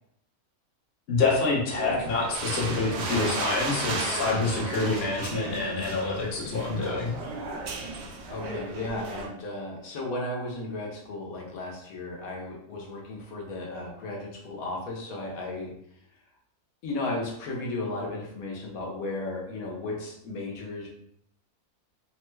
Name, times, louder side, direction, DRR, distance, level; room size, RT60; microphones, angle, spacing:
voice 1, 1.1-7.2, left 3 dB, 50° left, -3 dB, 0.8 m, -27 dB
sound 1, 1.7-9.3, right 3 dB, 65° right, 0.7 m, -34 dB
voice 2, 8.3-15.7 16.8-20.9, left 2 dB, 75° left, -2 dB, 1.1 m, -35 dB
3.0 x 2.1 x 3.1 m, 0.73 s
omnidirectional pair, 1.6 m